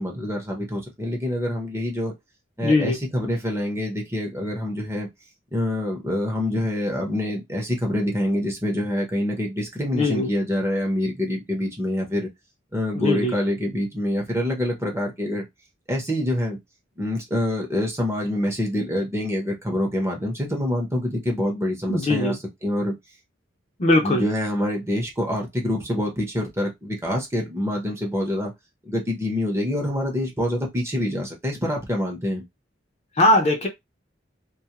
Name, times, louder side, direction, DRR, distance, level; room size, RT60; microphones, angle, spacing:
voice 1, 0.0-2.1 2.6-5.1 5.5-12.3 12.7-15.5 15.9-16.6 17.0-22.9 24.0-28.5 28.8-32.4, left 1 dB, 15° right, 0.7 m, -26 dB
voice 2, 2.6-3.0 9.9-10.3 13.0-13.3 21.9-22.4 23.8-24.2 33.2-33.7, left 2 dB, 35° left, 0.6 m, -20 dB
2.3 x 2.1 x 2.9 m
head